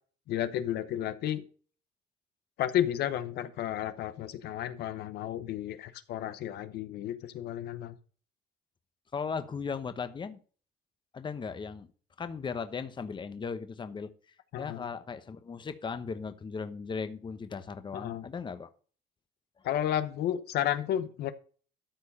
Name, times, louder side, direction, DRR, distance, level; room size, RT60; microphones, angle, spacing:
voice 1, 0.3-1.4 2.6-7.9 14.5-14.9 17.9-18.2 19.6-21.3, left 11 dB, 75° left, 0.8 m, -32 dB
voice 2, 9.1-10.4 11.1-11.9 12.2-14.1 14.6-18.7 19.6-19.7, left 5 dB, 30° left, 1.0 m, -37 dB
13.0 x 4.7 x 5.4 m
cardioid pair, 110°, 17 cm